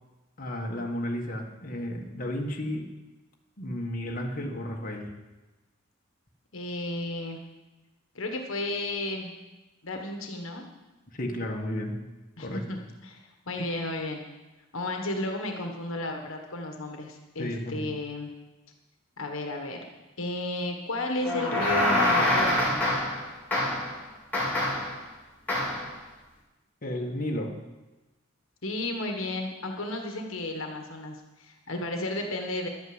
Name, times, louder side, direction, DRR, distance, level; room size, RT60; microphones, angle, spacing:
voice 1, 0.4-2.9 3.6-5.1 11.1-12.0 12.4-12.6 17.4-17.9 26.8-27.5, left 1 dB, 45° left, 0 dB, 1.6 m, -33 dB
voice 2, 6.5-7.4 8.1-9.3 9.8-10.6 12.4-13.2 13.5-14.2 14.7-18.3 19.2-19.9 20.2-22.9 28.6-32.7, left 2 dB, 70° left, 3 dB, 1.5 m, -33 dB
sound 1, 21.2-23.2 23.5-23.9 24.3-24.9 25.5-25.9, left 1 dB, 10° left, 4.7 m, -25 dB
11.5 x 9.3 x 7.9 m, 1.1 s
head